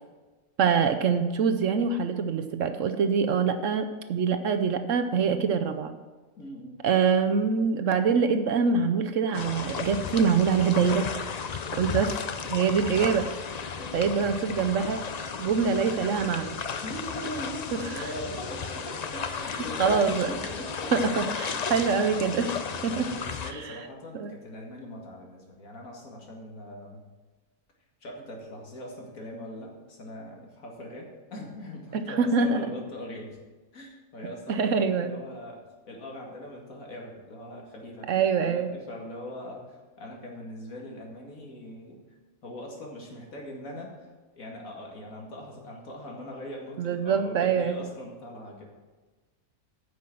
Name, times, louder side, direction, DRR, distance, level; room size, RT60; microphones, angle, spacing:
voice 1, 0.6-5.9 6.8-11.1 11.7-12.1 12.5-13.3 13.9-15.0 15.4-16.6 19.8-20.3 20.9-22.5 22.8-23.1 23.5-23.7 24.1-24.3 31.9-32.6 34.5-35.1 38.1-38.7 46.8-47.8, right 6 dB, 65° right, 8 dB, 1.0 m, -24 dB
voice 2, 6.4-6.8 13.8-14.0 16.8-21.1 21.5-21.7 22.7-27.0 28.0-33.4 33.7-38.1 38.4-42.0 42.4-44.1 44.3-48.6, left 1 dB, 65° left, 0 dB, 2.4 m, -41 dB
sound 1, 9.3-23.5, left 6 dB, 85° left, 0.3 m, -34 dB
9.7 x 6.2 x 7.6 m, 1.3 s
omnidirectional pair, 1.6 m